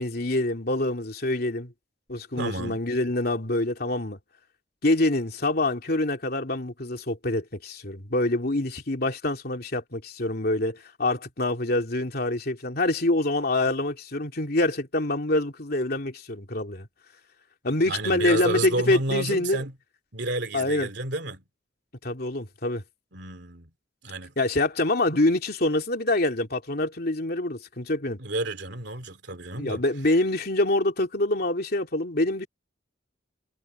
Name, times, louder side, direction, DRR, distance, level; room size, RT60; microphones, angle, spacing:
voice 1, 0.0-1.7 2.1-4.2 4.8-16.9 17.6-19.6 20.5-20.9 22.0-22.8 24.4-28.2 29.6-32.5, left 2 dB, 55° left, 2.9 m, -26 dB
voice 2, 2.4-2.8 17.8-19.7 20.1-21.4 23.1-23.7 24.0-24.3 28.2-29.8, right 2 dB, 65° right, 3.0 m, -31 dB
head